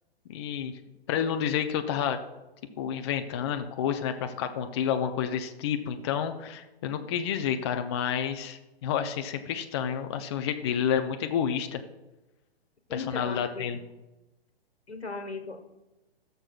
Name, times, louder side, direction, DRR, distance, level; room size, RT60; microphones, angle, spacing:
voice 1, 0.3-0.7 1.1-2.2 2.8-11.8 12.9-13.8, left 8 dB, 25° left, 7 dB, 0.4 m, -29 dB
voice 2, 12.9-13.6 14.9-15.6, left 4 dB, 90° left, 6 dB, 1.3 m, -37 dB
16.5 x 6.7 x 2.3 m, 1.0 s
figure-of-eight pair, 125°, 31 cm